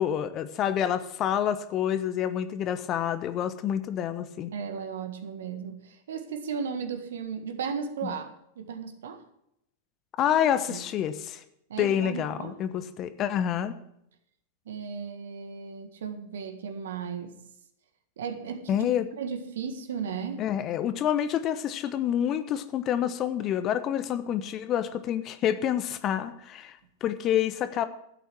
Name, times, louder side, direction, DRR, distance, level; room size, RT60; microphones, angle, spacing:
voice 1, 0.0-4.5 8.0-8.1 10.2-11.4 11.8-13.8 18.7-19.1 20.4-27.8, left 10 dB, 35° left, 12 dB, 1.0 m, -28 dB
voice 2, 4.5-8.3 8.5-9.2 10.7-10.9 11.7-12.5 14.6-17.4 18.2-18.9 19.2-20.4, right 6 dB, 65° right, 8 dB, 1.7 m, -35 dB
12.0 x 8.4 x 6.1 m, 0.76 s
figure-of-eight pair, 95°, 0 cm